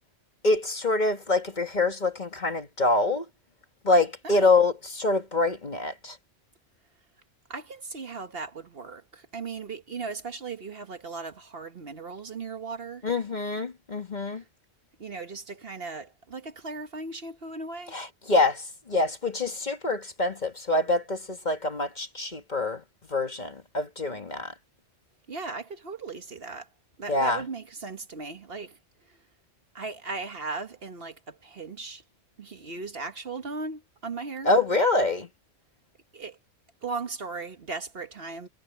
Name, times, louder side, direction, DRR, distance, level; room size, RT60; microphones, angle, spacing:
voice 1, 0.4-3.3 3.8-6.2 13.0-14.4 17.9-22.8 23.1-24.5 27.1-27.4 34.4-35.3, left 2 dB, 35° left, 2.0 m, -25 dB
voice 2, 7.5-13.0 14.3-14.4 15.0-18.0 25.3-26.7 27.0-28.8 29.1-29.2 29.7-32.0 32.4-34.5 36.1-36.4 36.8-38.5, right 4 dB, 50° right, 1.4 m, -37 dB
omnidirectional pair, 1.3 m